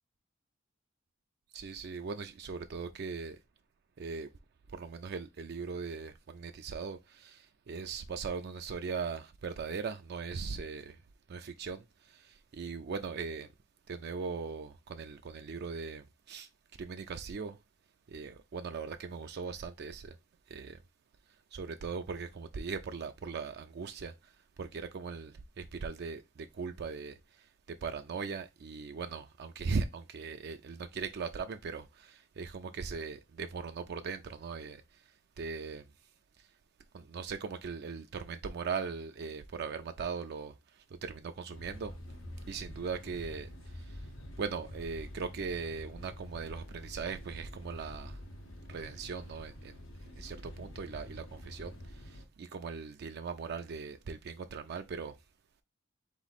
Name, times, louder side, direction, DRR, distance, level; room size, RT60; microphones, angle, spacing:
voice 1, 1.5-3.4 4.0-4.3 4.7-11.0 11.3-13.5 13.9-16.5 16.8-17.6 18.1-20.2 20.5-20.8 21.5-24.3 24.6-35.9 36.4-36.5 36.9-41.9 42.5-44.1 44.4-48.2 48.7-49.8 50.2-55.2, right 5 dB, 55° right, 0.4 m, -39 dB
sound 1, 41.5-52.3, equal, 90° left, 0.9 m, -47 dB
3.8 x 3.0 x 4.0 m
head